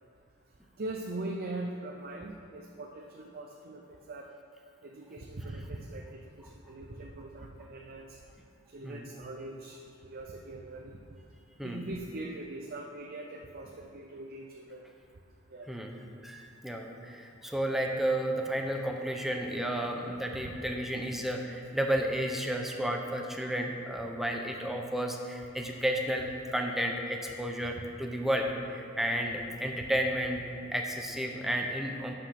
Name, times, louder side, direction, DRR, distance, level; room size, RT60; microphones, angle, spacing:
voice 1, 0.8-3.8 4.1-4.3 4.8-8.2 8.7-10.9 11.6-14.8 15.5-15.7 29.8-29.9, right 2 dB, 50° right, 1 dB, 0.7 m, -41 dB
voice 2, 15.7-16.0 16.2-32.1, equal, ahead, 2 dB, 0.8 m, -32 dB
11.5 x 5.1 x 5.9 m, 2.5 s
head